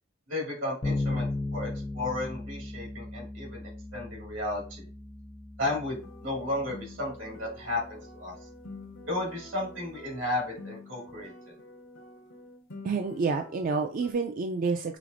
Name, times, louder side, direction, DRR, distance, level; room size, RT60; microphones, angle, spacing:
voice 1, 0.3-4.9 5.6-8.3 9.1-11.3, left 2 dB, 80° right, -1 dB, 2.0 m, -34 dB
Bass guitar, 0.8-10.5, left 2 dB, 25° left, 0.5 m, -38 dB
sound 1, 5.9-14.1, left 2 dB, 85° left, 0.9 m, -48 dB
voice 2, 12.8-15.0, right 4 dB, 45° right, 5 dB, 0.3 m, -29 dB
5.0 x 3.2 x 2.5 m, 0.39 s
head